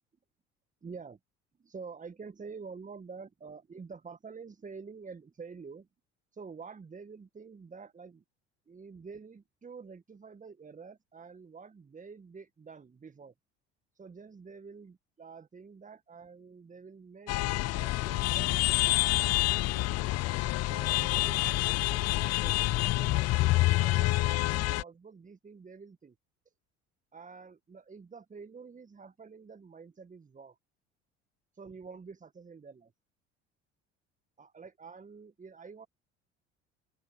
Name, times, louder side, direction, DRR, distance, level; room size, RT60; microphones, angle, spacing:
voice 1, 0.8-1.2 1.6-5.9 6.3-8.2 8.7-13.3 13.9-20.0 20.7-26.1 26.4-26.5 27.1-30.6 31.5-32.9 34.4-35.9, right 5 dB, 20° right, 1.7 m, -48 dB
sound 1, 17.3-24.8, left 18 dB, 45° left, 0.7 m, -27 dB
open air
figure-of-eight pair, 60°, 35 cm